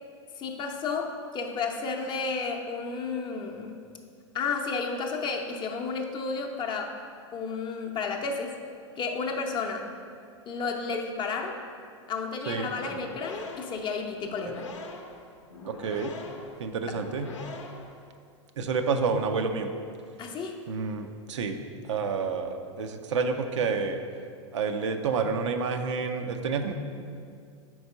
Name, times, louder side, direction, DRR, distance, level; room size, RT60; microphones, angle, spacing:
voice 1, 0.4-3.8 4.3-7.0 7.3-8.5 9.0-9.9 10.5-11.6 12.1-14.7 16.9-17.0 20.2-20.6, left 4 dB, 30° left, 3 dB, 0.6 m, -32 dB
sound 1, 12.8-18.0, left 3 dB, 80° left, 0.7 m, -42 dB
voice 2, 15.6-16.1 16.6-17.3 18.6-19.7 20.7-21.6 21.9-24.0 24.5-26.7, right 5 dB, 75° right, 6 dB, 0.5 m, -29 dB
4.7 x 4.2 x 5.3 m, 2.3 s
hypercardioid pair, 100°, 15 cm